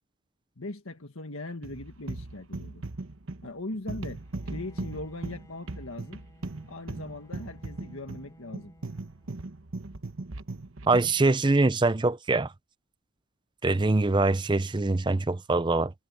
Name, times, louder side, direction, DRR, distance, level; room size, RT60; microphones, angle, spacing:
voice 1, 0.6-2.8 3.4-6.2 6.7-8.7, left 2 dB, 75° left, 1.7 m, -40 dB
sound 1, 1.6-11.2, right 2 dB, 65° right, 1.1 m, -38 dB
Bowed string instrument, 4.2-9.5, equal, 15° left, 5.5 m, -57 dB
voice 2, 10.9-12.5 13.6-15.9, right 3 dB, 20° right, 0.5 m, -23 dB
head